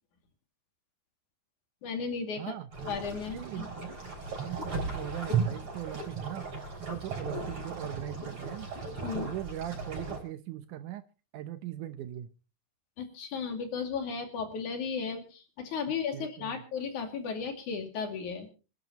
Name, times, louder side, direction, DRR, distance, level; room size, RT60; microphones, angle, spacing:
voice 1, 1.8-3.7 9.0-9.3 13.0-18.5, left 5 dB, 70° left, 5 dB, 3.9 m, -35 dB
voice 2, 2.4-2.7 3.3-4.0 4.4-6.5 6.8-8.7 9.1-11.0 11.3-12.3 16.1-16.6, right 13 dB, 80° right, 10 dB, 2.3 m, -39 dB
sound 1, 2.7-10.2, right 4 dB, 55° right, 6.4 m, -36 dB
27.0 x 11.0 x 2.9 m, 0.32 s
omnidirectional pair, 3.6 m